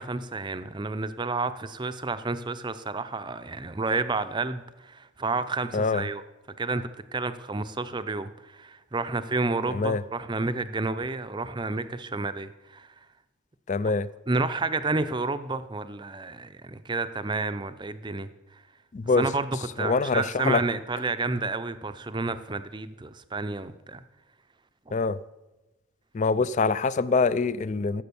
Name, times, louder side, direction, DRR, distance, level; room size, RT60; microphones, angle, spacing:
voice 1, 0.0-6.2 6.6-12.9 14.3-18.3 19.2-19.5 19.8-24.0, right 3 dB, 20° right, 11 dB, 0.6 m, -30 dB
voice 2, 9.7-10.0 13.7-14.1 18.9-19.3 19.8-20.6 24.9-25.2 26.1-28.0, left 4 dB, 35° left, 17 dB, 0.4 m, -24 dB
14.5 x 7.7 x 7.0 m, 1.0 s
head